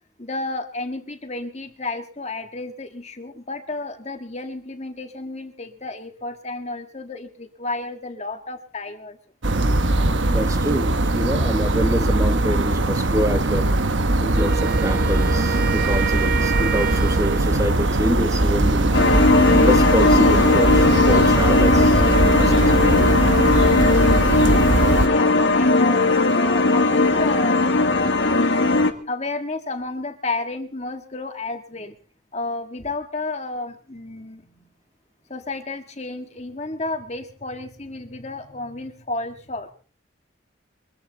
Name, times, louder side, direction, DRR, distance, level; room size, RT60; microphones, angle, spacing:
voice 1, 0.2-9.2 25.0-27.6 28.3-28.8 29.1-32.0 32.3-34.7 35.3-39.7, left 2 dB, 35° left, 7 dB, 1.7 m, -32 dB
sound 1, 9.4-25.1, right 2 dB, 75° right, 1.2 m, -20 dB
voice 2, 10.3-13.7 14.2-18.9 19.6-23.1, equal, 15° right, 7 dB, 1.4 m, -26 dB
Wind instrument woodwind instrument, 14.3-17.7, right 8 dB, 45° right, 0.9 m, -28 dB
sound 2, 18.9-28.9, left 2 dB, 70° left, 1.7 m, -18 dB
23.5 x 15.0 x 4.0 m, 0.38 s
head